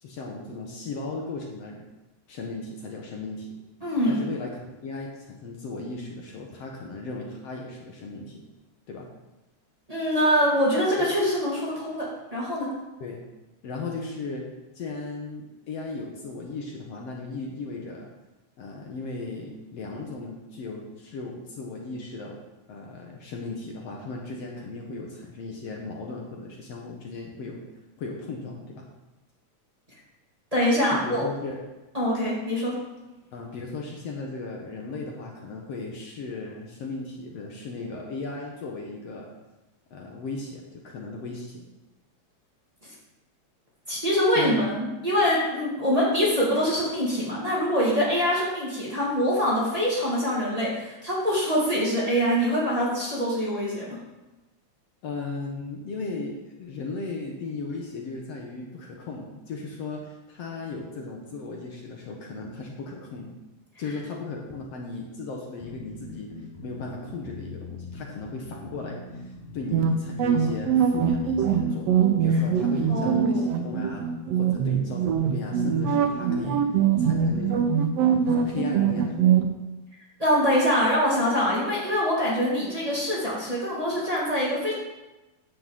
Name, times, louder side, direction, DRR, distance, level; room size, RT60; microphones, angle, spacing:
voice 1, 0.0-1.9 2.3-3.6 4.1-8.5 8.9-9.1 13.0-13.2 13.6-14.5 14.8-18.1 18.6-22.4 22.7-27.6 28.0-28.9 30.9-31.6 33.3-39.3 39.9-41.7 44.4-44.6 55.0-63.3 63.8-66.3 66.6-69.2 69.5-74.0 74.4-76.6 77.0-77.7 78.3-79.3, left 3 dB, 60° left, 0 dB, 2.3 m, -36 dB
voice 2, 3.8-4.2 9.9-12.7 30.5-31.2 31.9-32.7 43.9-54.0 72.9-73.4 80.2-84.7, equal, 15° right, -6 dB, 2.6 m, -24 dB
sound 1, 65.6-73.0, left 3 dB, 85° left, 4.4 m, -41 dB
sound 2, 69.7-79.5, right 7 dB, 70° right, 1.8 m, -23 dB
10.0 x 6.1 x 7.6 m, 1.0 s
omnidirectional pair, 3.3 m